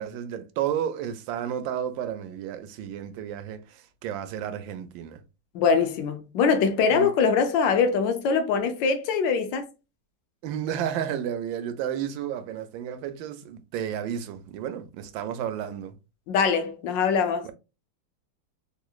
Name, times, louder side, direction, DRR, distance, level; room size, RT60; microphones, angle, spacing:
voice 1, 0.0-5.2 6.9-7.1 10.4-16.0 17.4-17.5, right 9 dB, 80° right, 1.3 m, -32 dB
voice 2, 5.5-9.7 16.3-17.5, left 5 dB, 75° left, 1.3 m, -23 dB
3.6 x 2.9 x 2.3 m
omnidirectional pair, 2.1 m